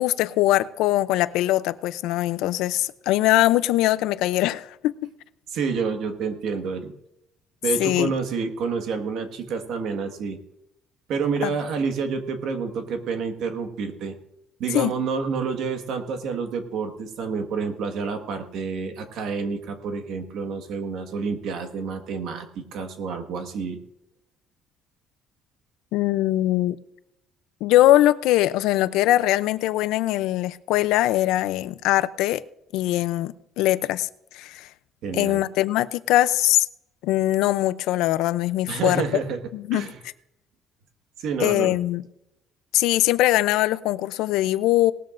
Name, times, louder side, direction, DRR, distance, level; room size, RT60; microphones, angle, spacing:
voice 1, 0.0-5.1 7.8-8.1 11.4-11.5 14.7-14.9 25.9-26.8 27.6-32.4 32.7-34.1 34.3-34.7 35.1-36.7 37.0-39.0 39.5-39.9 41.4-42.0 42.7-44.9, left 15 dB, 85° left, 15 dB, 0.5 m, -21 dB
voice 2, 5.5-6.9 7.6-10.4 11.1-14.1 14.6-23.8 35.0-35.4 38.7-39.4 39.7-40.0 41.2-41.8, right 5 dB, 60° right, 7 dB, 1.6 m, -28 dB
19.0 x 13.0 x 2.6 m, 0.81 s
cardioid pair, 160°, 0 cm